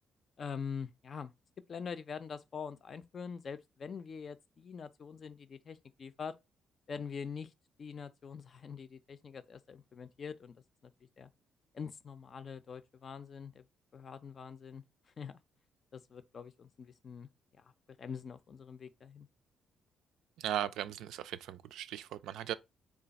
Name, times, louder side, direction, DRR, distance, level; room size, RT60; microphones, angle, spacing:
voice 1, 0.4-1.3 1.7-6.3 6.9-7.5 7.8-10.5 11.2-11.3 11.7-13.6 13.9-14.8 15.2-15.4 15.9-17.3 17.6-17.7 18.0-19.3, left 6 dB, 45° left, 0.5 m, -44 dB
voice 2, 20.4-22.5, right 11 dB, 85° right, 0.3 m, -37 dB
3.3 x 2.4 x 4.0 m
cardioid pair, 100°, 0 cm